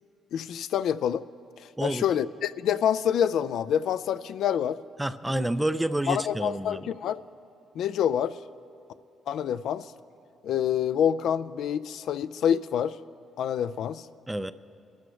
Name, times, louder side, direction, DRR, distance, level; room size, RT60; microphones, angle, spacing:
voice 1, 0.3-1.2 1.8-4.8 5.3-5.5 6.1-7.2 7.8-8.3 9.3-9.9 10.4-12.9 13.4-14.0, left 9 dB, 75° left, 13 dB, 0.3 m, -27 dB
voice 2, 5.0-6.9 14.3-14.5, right 1 dB, 10° right, 14 dB, 0.4 m, -29 dB
24.0 x 12.5 x 3.2 m, 2.7 s
cardioid pair, 90°, 0 cm